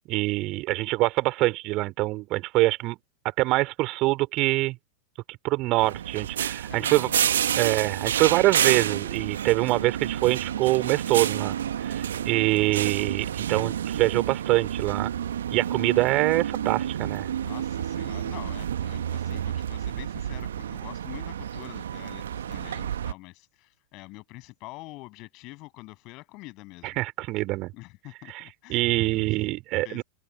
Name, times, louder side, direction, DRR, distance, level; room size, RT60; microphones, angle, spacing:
voice 1, 0.1-3.0 3.4-4.8 5.3-7.1 7.5-11.5 11.8-15.1 15.5-17.3 26.8-27.7 28.3-28.4 28.7-30.0, right 20 dB, 40° right, 4.9 m, -25 dB
sound 1, 5.8-23.1, right 9 dB, 65° right, 1.6 m, -29 dB
voice 2, 6.6-7.3 15.8-16.2 17.4-27.0 27.7-29.3 29.8-30.0, left 23 dB, 40° left, 7.6 m, -45 dB
open air
figure-of-eight pair, 90°, 0 cm